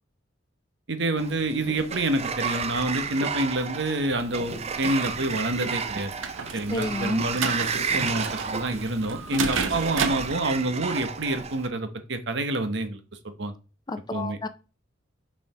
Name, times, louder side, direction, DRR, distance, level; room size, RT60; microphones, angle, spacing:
voice 1, 0.9-6.1 6.5-13.0 13.2-13.5 14.1-14.4, right 2 dB, 65° right, 9 dB, 1.1 m, -27 dB
Sliding door, 1.2-11.7, right 5 dB, 35° right, 0.6 m, -32 dB
sound 1, 4.1-10.3, right 5 dB, 90° right, 0.9 m, -33 dB
voice 2, 6.7-7.2 9.3-9.4 13.9-14.5, left 2 dB, 20° left, 10 dB, 0.6 m, -31 dB
5.8 x 4.9 x 4.9 m, 0.32 s
head